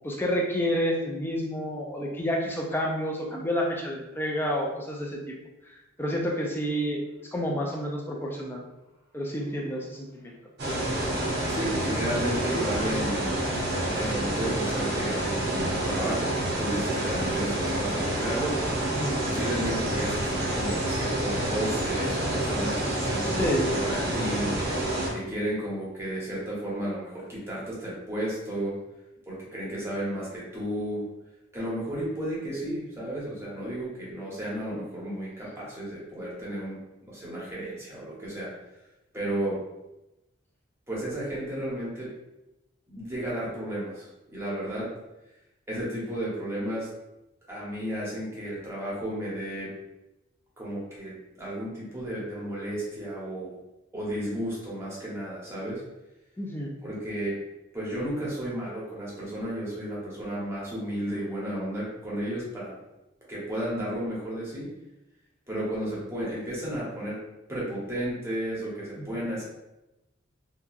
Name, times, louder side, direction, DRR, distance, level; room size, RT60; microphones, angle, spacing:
voice 1, 0.0-5.2 6.0-8.6 9.1-10.3 18.9-19.2 23.3-23.8 56.4-56.7 69.0-69.1, equal, 10° left, -1 dB, 0.4 m, -29 dB
sound 1, 10.6-25.1, right 1 dB, 55° right, 0.7 m, -28 dB
voice 2, 11.5-13.3 14.0-24.5 25.1-28.7 29.3-31.0 31.5-36.8 37.1-38.5 39.1-39.6 40.9-42.1 42.9-44.9 45.7-46.9 47.5-49.7 50.6-53.5 53.9-55.8 56.8-57.3 57.7-62.7 63.3-64.7 65.5-67.2 67.5-69.4, right 1 dB, 15° right, -7 dB, 0.8 m, -33 dB
2.8 x 2.3 x 2.4 m, 0.97 s
head